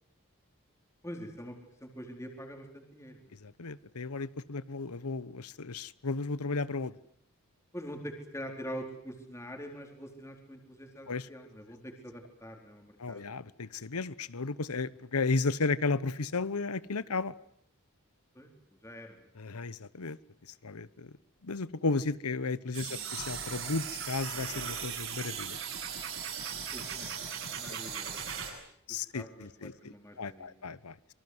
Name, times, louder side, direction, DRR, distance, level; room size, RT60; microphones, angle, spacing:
voice 1, 1.0-3.2 7.7-13.3 18.3-18.5 18.8-19.3 22.9-23.1 26.7-28.2 28.9-30.6, equal, 15° left, 3 dB, 4.1 m, -45 dB
voice 2, 3.4-6.9 11.1-11.3 13.0-17.3 19.4-20.2 20.6-21.1 21.4-25.6 28.9-30.9, left 3 dB, 90° left, 18 dB, 1.0 m, -34 dB
sound 1, 22.7-28.5, right 7 dB, 65° right, 7.8 m, -38 dB
27.0 x 24.0 x 7.9 m, 0.71 s
head